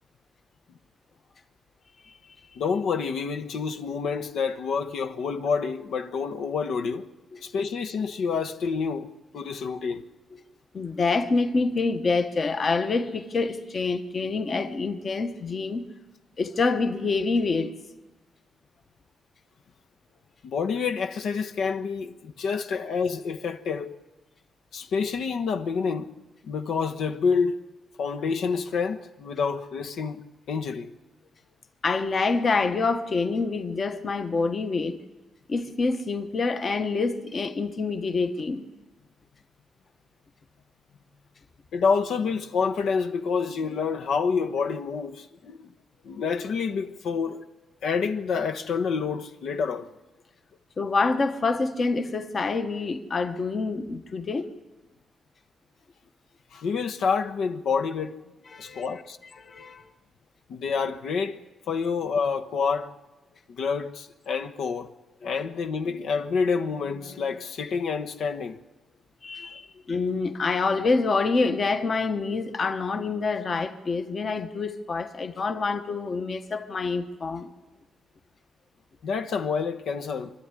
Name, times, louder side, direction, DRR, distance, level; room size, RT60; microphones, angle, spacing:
voice 1, 2.6-7.1 7.4-10.0 20.4-24.0 24.7-26.1 26.4-27.6 28.0-30.9 41.7-45.7 46.0-47.4 47.8-49.9 56.5-58.2 58.6-59.2 60.5-61.4 61.7-62.9 63.5-64.9 65.2-68.6 79.0-80.3, left 5 dB, 70° left, 1.1 m, -28 dB
voice 2, 10.7-15.9 16.4-17.7 31.8-35.0 35.5-38.6 50.8-54.5 58.5-59.0 59.4-59.9 69.2-77.5, left 4 dB, 30° left, 1.1 m, -26 dB
25.5 x 13.0 x 9.7 m
wide cardioid pair, 175°, 0 cm